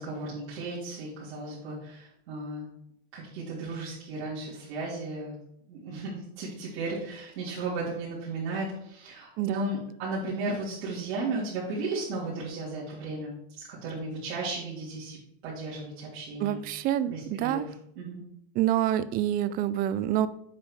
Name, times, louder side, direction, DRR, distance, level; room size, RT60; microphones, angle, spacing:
voice 1, 0.0-2.7 3.1-5.3 5.7-13.3 13.8-15.2 15.4-16.6 17.1-17.7 17.9-18.2, right 2 dB, 70° right, -8 dB, 3.4 m, -35 dB
voice 2, 9.4-9.7 16.4-17.7 18.5-20.3, right 11 dB, 30° right, 15 dB, 0.4 m, -27 dB
8.3 x 5.1 x 4.8 m, 0.73 s
supercardioid pair, 140°, 32 cm